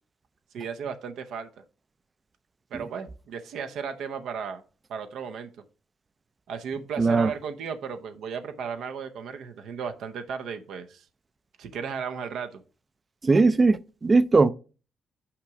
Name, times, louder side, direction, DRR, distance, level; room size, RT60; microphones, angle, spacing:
voice 1, 0.5-1.5 2.7-4.6 4.9-5.6 6.5-11.0 11.6-12.6, right 6 dB, 75° right, 0.7 m, -35 dB
voice 2, 7.0-7.3 13.2-14.5, right 3 dB, 30° right, 0.4 m, -19 dB
5.8 x 4.7 x 5.0 m
cardioid pair, 90°, 0 cm